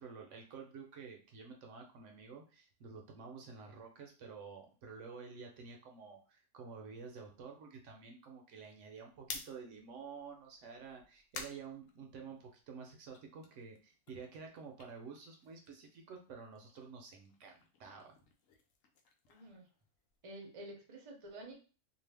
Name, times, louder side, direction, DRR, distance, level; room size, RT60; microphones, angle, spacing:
voice 1, 0.0-18.2, right 5 dB, 70° right, 2 dB, 0.9 m, -50 dB
sound 1, 9.2-12.6 13.0-16.0 16.2-20.4, left 5 dB, 80° left, 1.0 m, -52 dB
voice 2, 19.3-19.7 20.2-21.6, right 1 dB, 35° right, 1 dB, 0.6 m, -50 dB
2.6 x 2.3 x 3.3 m, 0.35 s
omnidirectional pair, 1.4 m